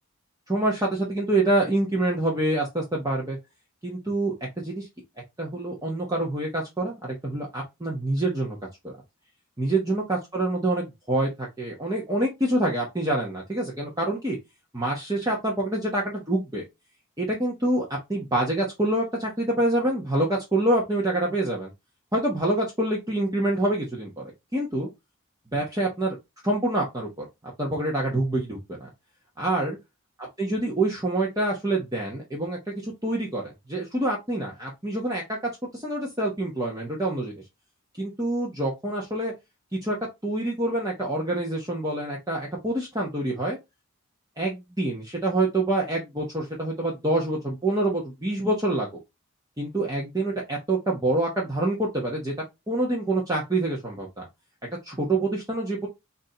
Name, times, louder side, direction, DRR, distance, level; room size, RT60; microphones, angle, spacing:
voice 1, 0.5-3.4 3.8-4.9 5.4-8.6 8.8-8.9 9.6-14.4 14.7-16.6 17.2-21.7 22.1-24.2 24.5-24.9 25.5-26.2 26.4-27.3 27.6-28.9 29.4-29.8 30.4-35.4 35.7-37.3 38.0-39.3 39.7-40.0 40.2-43.6 44.4-48.9 49.6-52.3 52.7-54.3 54.8-55.9, right 1 dB, 15° right, -2 dB, 1.0 m, -26 dB
4.8 x 2.7 x 3.8 m, 0.21 s
head